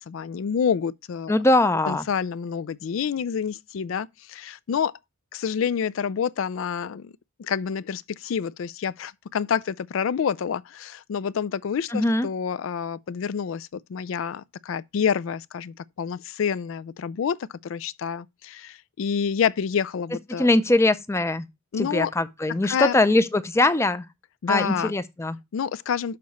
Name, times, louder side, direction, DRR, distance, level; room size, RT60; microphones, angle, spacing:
voice 1, 0.0-1.4 1.9-4.9 5.3-7.1 7.4-17.4 17.6-20.5 21.7-22.1 22.6-22.9 24.4-24.9 25.5-26.2, left 7 dB, 75° left, 0.4 m, -28 dB
voice 2, 1.3-2.0 11.9-12.3 20.4-21.4 21.8-24.0 24.5-25.4, left 2 dB, 15° left, 0.4 m, -21 dB
6.7 x 4.1 x 5.2 m
head